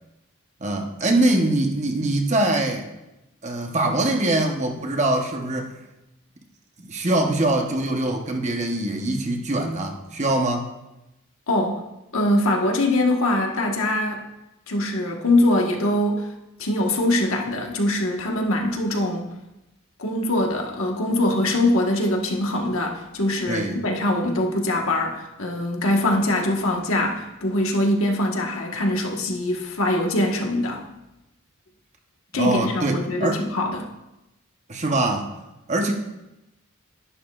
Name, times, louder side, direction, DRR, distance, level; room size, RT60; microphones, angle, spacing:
voice 1, 0.6-2.9 3.4-5.8 6.8-10.7 23.5-23.8 32.3-33.4 34.7-35.3 35.7-35.9, right 1 dB, 35° right, 3 dB, 0.9 m, -23 dB
voice 2, 11.5-11.8 12.1-14.2 14.7-16.3 16.6-19.3 20.0-30.8 32.3-33.9, left 1 dB, 75° left, 1 dB, 1.4 m, -23 dB
11.0 x 10.5 x 2.4 m, 0.94 s
head